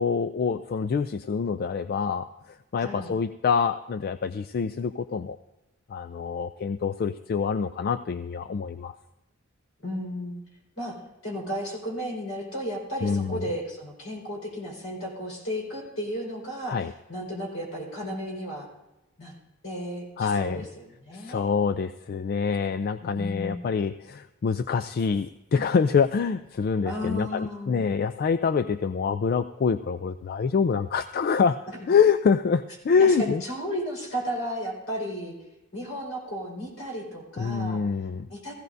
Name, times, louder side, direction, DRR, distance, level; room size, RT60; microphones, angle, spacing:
voice 1, 0.0-5.4 5.9-8.9 13.0-13.4 16.7-16.9 20.2-20.6 21.1-31.6 31.9-33.4 37.4-38.3, left 5 dB, 50° left, 12 dB, 0.3 m, -26 dB
voice 2, 2.8-3.1 9.8-10.4 10.8-10.9 11.2-16.8 17.1-18.7 19.2-19.3 19.6-21.5 23.0-23.6 26.8-27.8 31.7-31.9 33.0-35.3 35.7-37.8 38.3-38.5, equal, 75° left, -1 dB, 4.6 m, -34 dB
16.5 x 15.0 x 2.7 m, 0.98 s
head